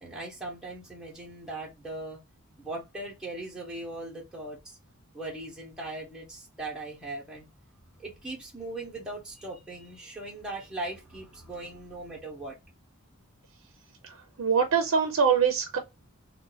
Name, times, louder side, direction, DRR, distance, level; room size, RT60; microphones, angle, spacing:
voice 1, 0.0-2.2 2.6-4.8 5.1-7.5 8.0-12.6, right 2 dB, 5° right, 0.8 m, -39 dB
voice 2, 14.0-15.8, right 6 dB, 60° right, 0.6 m, -24 dB
2.4 x 2.2 x 3.9 m
head